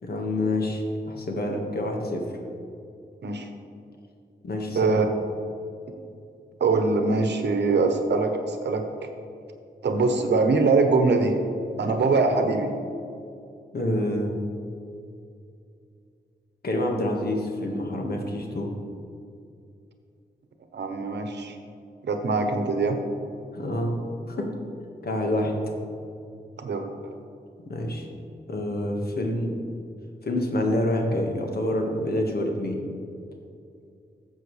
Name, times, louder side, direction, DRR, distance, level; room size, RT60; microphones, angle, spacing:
voice 1, 0.0-2.2 4.4-5.0 13.7-14.4 16.6-18.7 23.5-23.9 24.3-24.5 25.0-25.5 27.7-28.1 28.5-29.6 30.2-32.8, left 1 dB, 60° left, 1 dB, 1.6 m, -27 dB
voice 2, 4.7-5.1 6.6-8.8 9.8-11.3 11.8-12.7 20.7-21.6 22.0-23.0 26.6-26.9, right 3 dB, 75° right, 5 dB, 1.0 m, -23 dB
12.5 x 7.2 x 3.3 m, 2.4 s
cardioid pair, 75°, 18 cm